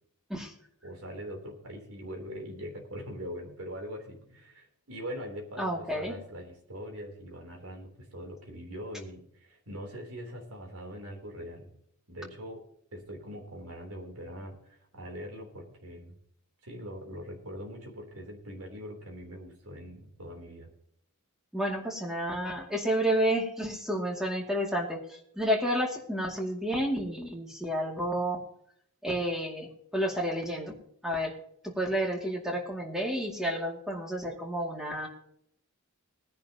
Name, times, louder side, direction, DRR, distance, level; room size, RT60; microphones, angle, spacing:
voice 1, 0.8-11.7 12.1-12.6 12.9-16.1 16.6-20.7, equal, 70° right, 2 dB, 3.4 m, -42 dB
voice 2, 5.6-6.1 21.5-28.4 29.0-30.7 31.0-31.3 31.6-35.1, equal, ahead, 0 dB, 2.4 m, -30 dB
19.5 x 10.5 x 2.9 m, 0.69 s
head